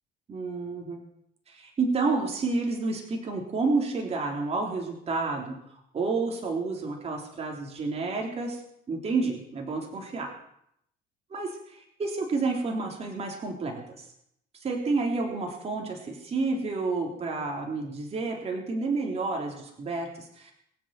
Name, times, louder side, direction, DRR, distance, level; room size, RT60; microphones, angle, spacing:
voice 1, 0.3-1.0 1.5-8.6 8.9-10.3 11.3-14.1 14.6-20.5, right 3 dB, 35° right, 0 dB, 3.6 m, -30 dB
23.0 x 8.1 x 7.7 m, 0.74 s
cardioid pair, 110°, 17 cm